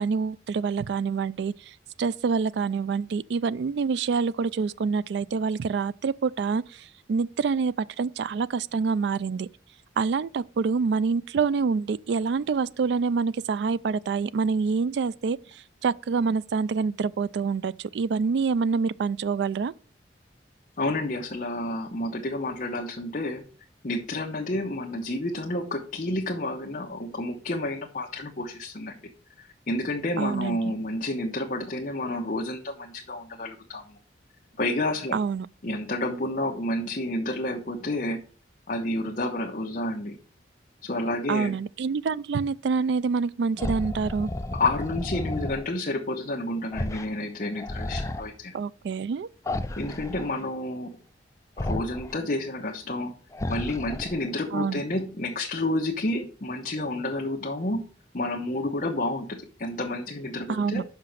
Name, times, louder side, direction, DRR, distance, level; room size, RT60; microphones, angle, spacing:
voice 1, 0.0-1.5 2.0-9.5 10.0-19.7 30.2-30.7 35.1-35.5 41.3-44.3 48.5-49.3 54.5-54.8 60.5-60.8, right 5 dB, 65° right, 0.3 m, -26 dB
voice 2, 20.8-23.4 23.8-29.0 29.4-34.0 34.6-35.2 35.6-38.2 38.7-40.2 40.8-41.5 44.5-48.5 49.8-50.9 51.6-53.1 53.5-57.8 58.1-60.8, left 1 dB, 45° left, 0.9 m, -30 dB
sound 1, 43.6-45.6 46.7-47.1 47.4-48.2 49.5-50.3 51.6-52.1 53.3-54.3, left 1 dB, 15° left, 0.4 m, -32 dB
5.8 x 5.8 x 6.4 m
head